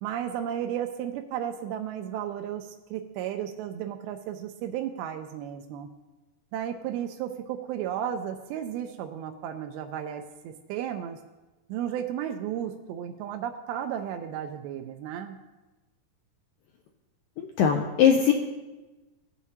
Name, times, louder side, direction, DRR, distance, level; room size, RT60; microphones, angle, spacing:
voice 1, 0.0-5.9 6.5-11.2 11.7-15.4, right 10 dB, 85° right, 5 dB, 2.3 m, -34 dB
voice 2, 17.4-18.3, left 8 dB, 85° left, 2 dB, 2.0 m, -21 dB
15.5 x 7.1 x 2.8 m, 1.1 s
omnidirectional pair, 4.6 m